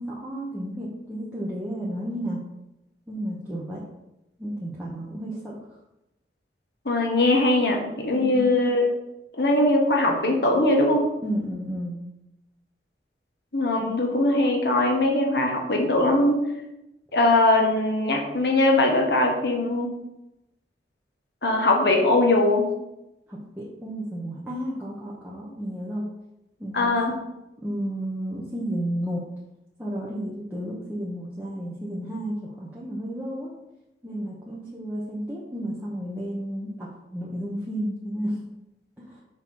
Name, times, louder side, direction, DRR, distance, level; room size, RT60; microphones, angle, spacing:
voice 1, 0.0-2.5 3.1-3.9 4.4-5.6 8.1-8.5 11.2-12.0 13.8-14.0 23.3-26.1 26.6-27.0 27.6-29.3 29.8-33.5 34.0-38.4 39.0-39.2, equal, 10° right, -7 dB, 0.9 m, -32 dB
voice 2, 6.8-8.9 9.3-11.1 13.5-16.4 17.1-19.9 21.4-22.7 26.7-27.1, left 2 dB, 65° left, 1 dB, 1.1 m, -21 dB
6.4 x 3.0 x 5.4 m, 0.91 s
head